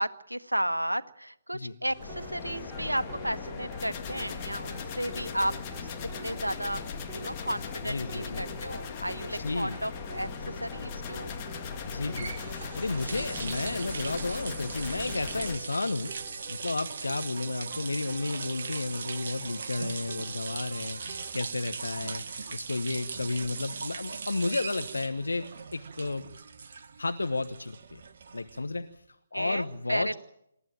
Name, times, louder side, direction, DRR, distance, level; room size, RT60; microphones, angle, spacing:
voice 1, 0.0-5.5 5.8-5.9 6.2-6.8 7.1-11.4 29.3-30.2, right 1 dB, 85° right, 13 dB, 1.2 m, -33 dB
sound 1, 1.8-21.3, right 4 dB, 10° right, 7.0 m, -47 dB
sound 2, 2.0-15.6, left 6 dB, 25° left, 1.9 m, -38 dB
voice 2, 7.8-8.5 9.3-9.8 11.9-16.1 16.5-25.5 25.7-26.3 26.6-26.7 27.0-28.0 28.3-30.1, left 3 dB, 70° left, 9 dB, 1.2 m, -32 dB
sound 3, 12.0-28.9, right 5 dB, 45° right, 1.3 m, -39 dB
27.0 x 14.0 x 9.0 m, 0.77 s
figure-of-eight pair, 140°, 0 cm